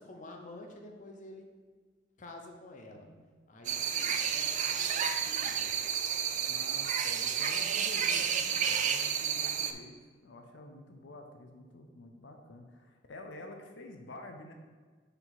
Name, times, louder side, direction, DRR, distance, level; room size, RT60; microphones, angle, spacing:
voice 1, 0.0-1.4 2.2-3.1 3.5-5.8, left 2 dB, 45° left, 2 dB, 0.7 m, -49 dB
voice 2, 2.9-3.3 6.4-14.5, left 2 dB, 75° left, 4 dB, 0.6 m, -49 dB
sound 1, 3.6-9.7, right 8 dB, 40° right, 0.3 m, -31 dB
5.4 x 4.8 x 4.0 m, 1.5 s
head